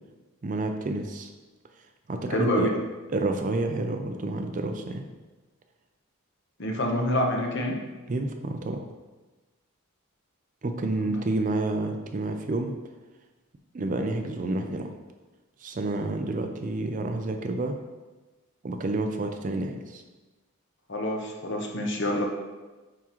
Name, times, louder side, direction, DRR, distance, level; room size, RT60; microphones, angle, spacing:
voice 1, 0.4-1.3 2.1-2.7 3.1-5.1 8.1-8.8 10.6-12.7 13.7-14.9 15.6-17.8 18.6-20.0, right 2 dB, 35° right, 5 dB, 0.4 m, -29 dB
voice 2, 2.3-2.8 6.6-7.8 11.0-11.1 20.9-22.3, left 1 dB, 55° left, 1 dB, 0.9 m, -27 dB
8.9 x 3.6 x 3.0 m, 1.2 s
head